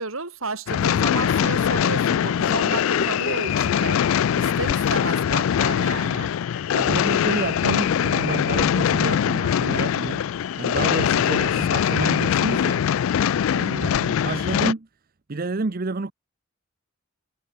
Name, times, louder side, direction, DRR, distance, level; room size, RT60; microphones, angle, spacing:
voice 1, 0.0-6.3 13.5-14.0, right 3 dB, 75° right, 4.6 m, -32 dB
sound 1, 0.7-14.7, left 9 dB, 70° left, 0.3 m, -22 dB
sound 2, 2.4-4.9 7.1-7.2 7.7-10.4 10.7-11.5 11.8-12.0 12.3-12.4 13.0-13.3, left 3 dB, 85° left, 2.8 m, -43 dB
sound 3, 2.4-8.6 9.5-10.7, left 2 dB, 40° left, 6.6 m, -39 dB
voice 2, 6.7-10.3 10.6-12.9 13.7-14.9 15.3-16.1, right 3 dB, 45° right, 0.7 m, -29 dB
head